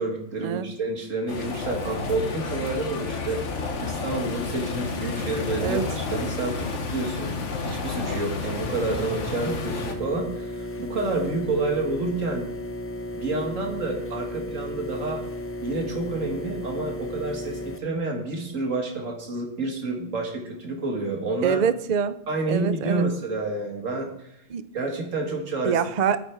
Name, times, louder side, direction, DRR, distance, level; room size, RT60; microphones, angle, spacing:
voice 1, 0.0-7.4 7.6-12.5 13.1-15.2 15.6-21.6 22.3-24.1 24.7-25.8, right 3 dB, 80° right, 1 dB, 2.3 m, -29 dB
sound 1, 1.3-10.0, left 4 dB, 70° left, 1.4 m, -31 dB
sound 2, 1.4-3.1 3.4-7.1 7.4-8.8, left 3 dB, 90° left, 2.2 m, -39 dB
sound 3, 8.6-17.8, left 1 dB, 15° left, 0.4 m, -34 dB
voice 2, 21.4-22.2 22.5-23.0 24.5-24.6 25.6-26.2, right 7 dB, 55° right, 13 dB, 0.5 m, -24 dB
10.0 x 8.5 x 4.7 m, 0.82 s
omnidirectional pair, 1.3 m